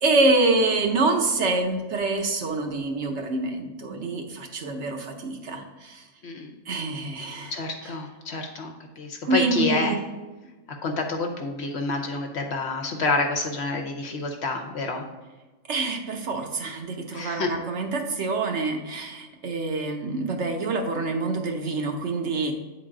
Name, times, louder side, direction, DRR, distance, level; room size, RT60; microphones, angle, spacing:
voice 1, 0.0-6.0 6.7-7.5 9.2-10.0 15.7-22.5, right 3 dB, 60° right, 4 dB, 1.1 m, -26 dB
voice 2, 6.2-6.5 7.5-9.9 10.8-15.0 17.1-17.5, left 3 dB, 60° left, 3 dB, 1.0 m, -28 dB
8.6 x 3.9 x 3.7 m, 1.2 s
omnidirectional pair, 1.4 m